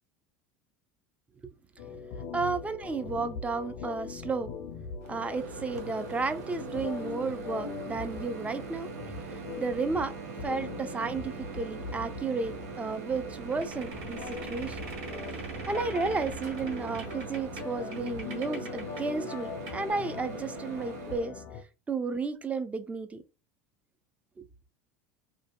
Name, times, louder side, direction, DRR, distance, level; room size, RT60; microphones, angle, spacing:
sound 1, 1.8-21.6, left 6 dB, 70° left, 0.6 m, -42 dB
voice 1, 2.3-4.5 5.1-8.9 9.3-10.1 10.4-14.8 15.7-21.3 21.9-23.2 24.4-24.5, right 4 dB, 15° right, 0.4 m, -33 dB
Microwave oven, 5.0-21.3, right 5 dB, 85° right, 0.6 m, -42 dB
sound 2, 13.4-19.1 19.3-19.4 19.7-19.9, right 3 dB, 70° right, 1.5 m, -43 dB
2.7 x 2.6 x 2.2 m
hypercardioid pair, 100°, 8 cm